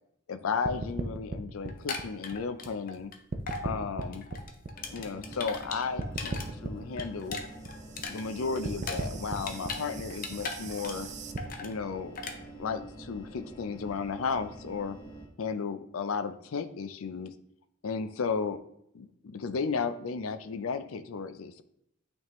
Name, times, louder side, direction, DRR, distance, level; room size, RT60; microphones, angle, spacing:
voice 1, 0.3-3.1 3.6-4.2 4.9-7.4 8.1-11.1 11.6-12.2 12.6-15.0 15.4-17.3 17.8-18.6 18.9-21.6, left 5 dB, 85° left, 11 dB, 0.5 m, -34 dB
sound 1, 0.7-3.0 3.3-5.7 6.0-11.4, right 3 dB, 35° right, 0.5 m, -38 dB
sound 2, 1.7-3.2 3.5-3.7 4.0-6.5 6.8-9.8 10.1-11.1 11.4-11.7 12.2-12.4, left 4 dB, 45° left, 0.7 m, -38 dB
sound 3, 4.7-15.3, right 2 dB, 20° left, 1.5 m, -47 dB
8.8 x 3.6 x 3.0 m, 0.76 s
head